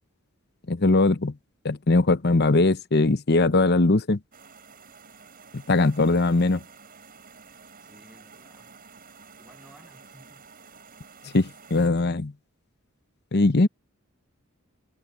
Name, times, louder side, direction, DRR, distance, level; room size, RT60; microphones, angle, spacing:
voice 1, 0.7-1.3 1.6-4.2 5.5-6.6 11.3-12.3 13.3-13.7, left 2 dB, 50° left, 0.9 m, -20 dB
sound 1, 4.3-11.9, right 5 dB, 45° right, 7.5 m, -50 dB
voice 2, 7.8-8.7 9.4-10.4, equal, 5° right, 7.4 m, -55 dB
head